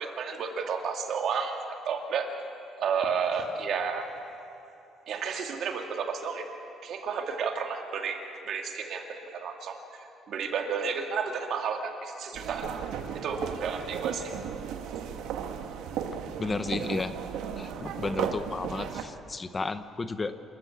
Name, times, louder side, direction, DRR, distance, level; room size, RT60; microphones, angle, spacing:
voice 1, 0.0-1.6 1.8-2.3 2.8-4.0 5.1-6.5 6.8-8.2 8.5-9.8 10.3-12.7 13.2-14.4, right 6 dB, 60° right, 3 dB, 2.6 m, -31 dB
sound 1, 12.3-19.0, right 8 dB, 90° right, 1.4 m, -35 dB
voice 2, 16.4-17.1 17.5-20.3, left 3 dB, 25° left, 11 dB, 0.7 m, -33 dB
27.5 x 14.0 x 8.5 m, 2.9 s
cardioid pair, 135°, 0 cm